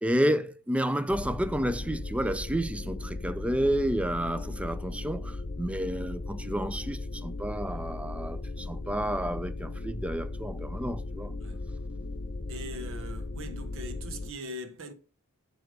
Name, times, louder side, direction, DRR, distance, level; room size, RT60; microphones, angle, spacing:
voice 1, 0.0-11.3, right 1 dB, 5° right, 0.3 m, -30 dB
sound 1, 1.1-14.3, left 2 dB, 45° left, 0.7 m, -37 dB
voice 2, 12.5-14.9, equal, 65° right, 1.0 m, -41 dB
7.5 x 3.5 x 4.8 m
head